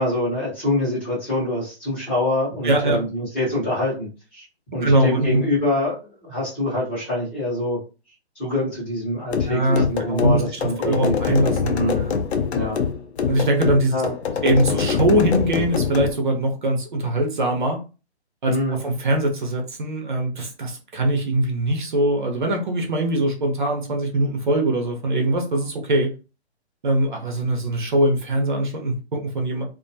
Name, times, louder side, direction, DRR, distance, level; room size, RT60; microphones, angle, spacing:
voice 1, 0.0-4.4 4.7-7.8 8.4-11.2 11.7-12.1 12.5-12.8 13.9-14.1 14.7-14.8 18.5-18.8, left 1 dB, 10° left, -8 dB, 0.7 m, -25 dB
voice 2, 2.6-3.0 4.8-5.4 9.5-12.1 13.3-13.9 14.4-17.8 18.4-26.1 26.8-29.6, right 1 dB, 45° right, 3 dB, 0.6 m, -22 dB
sound 1, 9.3-16.2, left 6 dB, 75° left, 0.6 m, -24 dB
2.5 x 2.2 x 2.6 m, 0.32 s
hypercardioid pair, 165°, 33 cm